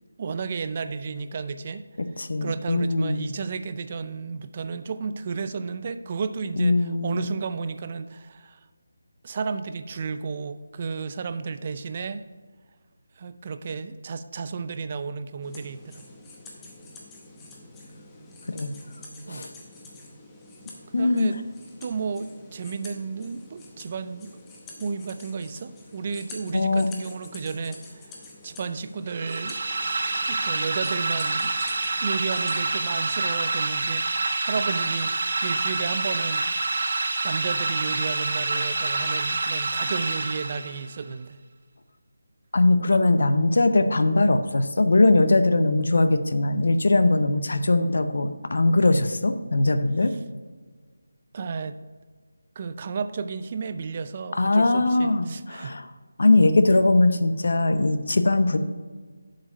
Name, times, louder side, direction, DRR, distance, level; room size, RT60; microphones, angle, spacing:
voice 1, 0.2-1.8 2.4-8.6 9.2-12.2 13.2-16.0 19.3-19.4 20.9-21.4 21.8-24.3 24.8-28.1 28.4-29.6 30.2-31.5 32.0-36.8 37.2-41.4 42.9-43.1 50.0-50.2 51.3-51.8 52.6-55.8, right 5 dB, 35° right, 12 dB, 0.4 m, -33 dB
voice 2, 2.2-3.3 6.6-7.3 18.5-18.7 19.3-19.5 20.9-21.3 26.5-26.9 42.5-50.1 54.4-55.8 56.2-58.6, left 2 dB, 70° left, 10 dB, 0.6 m, -21 dB
sound 1, 15.4-32.7, left 2 dB, 10° left, 0.8 m, -47 dB
sound 2, 29.1-41.0, right 3 dB, 60° right, 0.9 m, -27 dB
7.3 x 5.1 x 5.2 m, 1.5 s
figure-of-eight pair, 170°, 0 cm